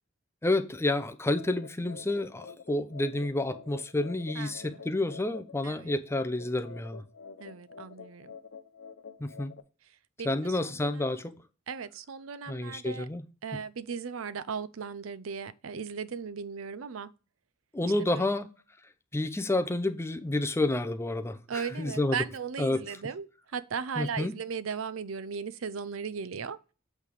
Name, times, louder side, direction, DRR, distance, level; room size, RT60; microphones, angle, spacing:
voice 1, 0.4-7.0 9.2-9.5 10.3-11.2 12.5-13.2 17.7-18.5 19.1-22.2 22.6-22.8 24.0-24.3, left 2 dB, 15° left, 0.6 m, -29 dB
sound 1, 1.4-9.6, left 5 dB, 65° left, 0.7 m, -48 dB
voice 2, 4.3-4.9 5.6-5.9 7.4-8.4 9.9-11.2 11.7-13.1 13.4-17.1 18.0-18.3 21.5-26.6, right 6 dB, 80° right, 0.5 m, -37 dB
8.2 x 3.5 x 4.8 m
head